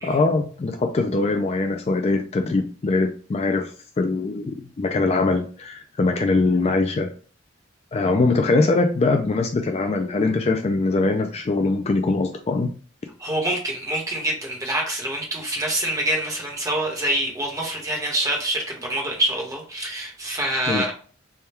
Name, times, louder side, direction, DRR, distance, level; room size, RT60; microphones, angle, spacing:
voice 1, 0.0-3.7 4.0-7.1 7.9-12.7 20.7-20.9, left 3 dB, 30° left, 5 dB, 0.3 m, -22 dB
voice 2, 13.2-20.9, right 1 dB, 15° right, -1 dB, 1.1 m, -26 dB
3.5 x 2.2 x 4.3 m, 0.42 s
head